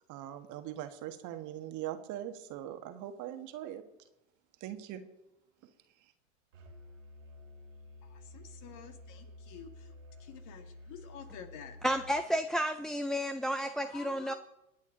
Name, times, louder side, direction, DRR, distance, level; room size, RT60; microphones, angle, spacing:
voice 1, 0.1-3.8 4.6-5.0 6.0-6.1, right 12 dB, 50° right, 7 dB, 1.6 m, -41 dB
Musical instrument, 6.5-12.2, left 1 dB, 90° right, 3.0 m, -51 dB
voice 2, 8.0-9.9 10.2-11.8 12.3-12.4 13.9-14.4, left 8 dB, 50° left, 6 dB, 2.2 m, -50 dB
voice 3, 11.8-14.3, equal, ahead, 7 dB, 0.4 m, -31 dB
25.5 x 9.5 x 3.9 m, 0.92 s
hypercardioid pair, 85°, 38 cm